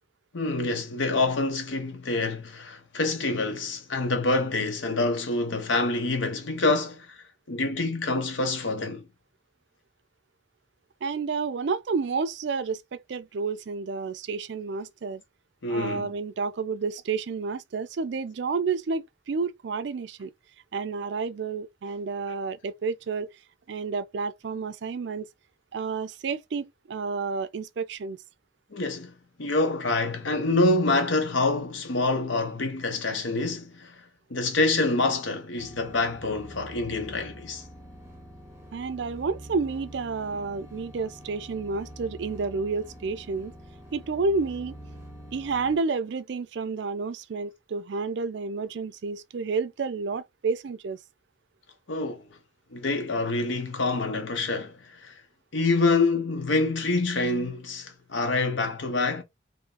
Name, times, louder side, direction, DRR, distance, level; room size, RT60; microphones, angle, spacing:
voice 1, 0.3-9.0 15.6-16.1 28.7-29.1 29.4-34.0 34.3-37.6 51.9-52.3 52.7-55.1 55.5-59.2, left 2 dB, 70° left, 0.9 m, -26 dB
voice 2, 11.0-15.2 15.7-20.3 20.7-23.3 23.7-25.3 25.7-28.2 38.7-43.5 43.9-44.8 45.3-51.0, right 4 dB, 60° right, 0.4 m, -30 dB
sound 1, 35.6-45.8, equal, 15° right, 0.7 m, -45 dB
2.9 x 2.7 x 3.7 m
head